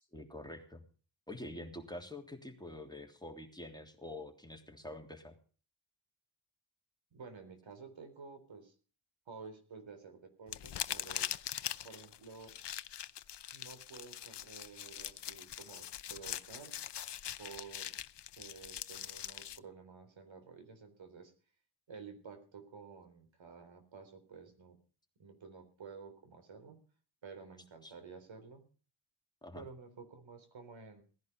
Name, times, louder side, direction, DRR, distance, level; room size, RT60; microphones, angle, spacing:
voice 1, 0.1-0.8 1.3-5.4 27.8-27.9 29.4-29.6, left 1 dB, 10° left, 3 dB, 3.2 m, -46 dB
voice 2, 7.1-8.7 9.3-11.3 11.8-12.6 13.5-16.8 17.4-17.9 18.3-21.3 21.9-24.8 25.2-26.8 27.2-28.7 29.5-31.0, right 5 dB, 65° right, 7 dB, 3.9 m, -52 dB
sound 1, 10.5-19.6, left 10 dB, 55° left, 0.8 m, -42 dB
18.0 x 10.5 x 5.3 m, 0.40 s
cardioid pair, 65°, 49 cm